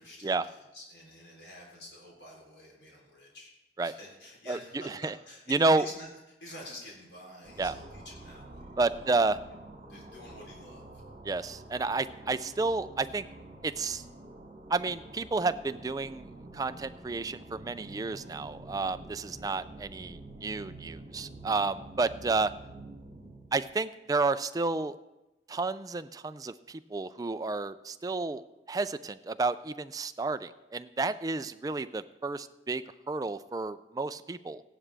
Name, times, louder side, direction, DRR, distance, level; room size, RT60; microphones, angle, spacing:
voice 1, 0.0-3.5 3.8-9.5 9.9-10.9, left 1 dB, 80° left, -2 dB, 3.6 m, -49 dB
voice 2, 4.8-5.1 5.5-5.9 7.6-7.7 8.8-9.4 11.2-13.3 13.6-14.0 14.7-16.3 16.5-22.5 23.5-24.9 25.5-34.6, right 3 dB, 20° right, 12 dB, 0.3 m, -31 dB
sound 1, 7.4-23.6, right 2 dB, 40° right, 2.5 m, -48 dB
15.5 x 11.0 x 3.4 m, 1.0 s
head